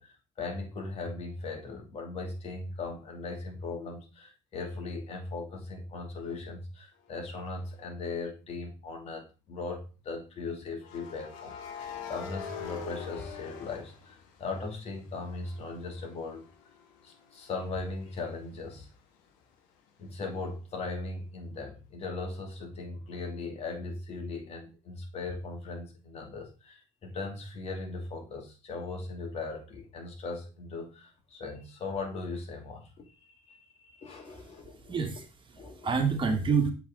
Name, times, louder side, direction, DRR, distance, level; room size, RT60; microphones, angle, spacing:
voice 1, 0.0-16.5 17.0-18.9 20.0-35.0 35.6-35.9, left 3 dB, 50° left, 2 dB, 2.4 m, -39 dB
sound 1, 7.5-7.7 10.8-14.7 15.1-18.7, left 6 dB, 80° left, 1.2 m, -44 dB
voice 2, 34.6-36.7, right 5 dB, 40° right, 6 dB, 1.5 m, -28 dB
7.7 x 4.0 x 3.8 m, 0.31 s
supercardioid pair, 70°, 13 cm